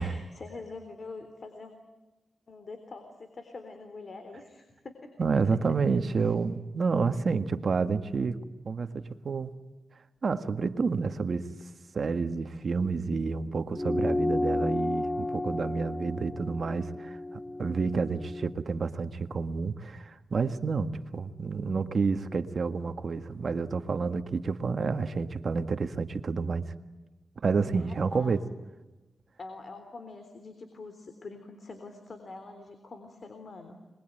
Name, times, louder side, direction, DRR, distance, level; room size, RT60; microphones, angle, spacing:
voice 1, 0.0-1.7 2.5-5.1 6.2-6.3 27.8-28.4 29.4-33.8, left 3 dB, 60° left, 7 dB, 3.6 m, -45 dB
voice 2, 5.2-8.4 8.7-9.5 10.2-11.5 11.9-26.7 27.4-28.4, right 4 dB, 60° right, 9 dB, 1.8 m, -29 dB
sound 1, 13.7-18.5, left 2 dB, 25° left, 1.2 m, -32 dB
26.5 x 22.5 x 9.2 m, 1.1 s
cardioid pair, 50°, 0 cm